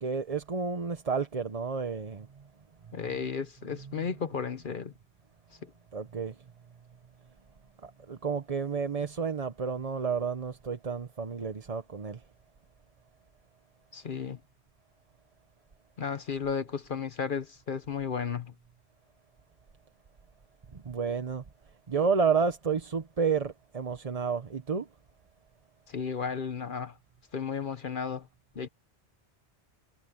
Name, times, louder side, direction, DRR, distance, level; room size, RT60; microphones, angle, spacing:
voice 1, 0.0-2.3 3.8-4.0 5.9-6.4 7.8-12.2 20.7-21.4 21.9-24.9, right 5 dB, 35° right, 0.9 m, -31 dB
voice 2, 2.9-4.9 5.6-5.7 13.9-14.4 16.0-18.5 25.9-27.0 27.3-28.3 28.5-28.7, left 6 dB, 55° left, 0.9 m, -34 dB
omnidirectional pair, 1.1 m